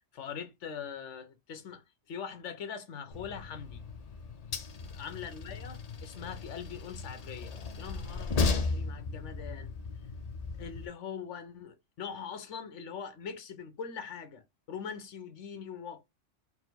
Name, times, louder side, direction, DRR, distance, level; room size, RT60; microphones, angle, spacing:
voice 1, 0.1-3.8 4.9-9.7 10.6-16.0, left 7 dB, 70° left, 1.1 m, -42 dB
Train, 3.1-10.9, left 4 dB, 50° left, 0.4 m, -36 dB
4.4 x 2.1 x 4.4 m
omnidirectional pair, 1.3 m